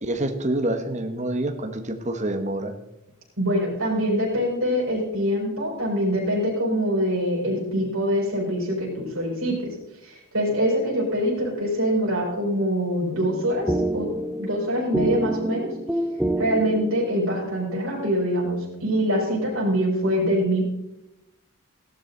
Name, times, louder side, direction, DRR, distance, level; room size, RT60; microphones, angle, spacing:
voice 1, 0.0-2.7, right 1 dB, 35° right, 6 dB, 1.3 m, -27 dB
voice 2, 3.4-9.8 10.0-14.1 14.4-15.7 16.4-20.6, equal, 75° right, -4 dB, 4.9 m, -24 dB
sound 1, 13.1-17.4, right 1 dB, 5° right, 0.6 m, -28 dB
16.0 x 11.5 x 4.0 m, 0.90 s
head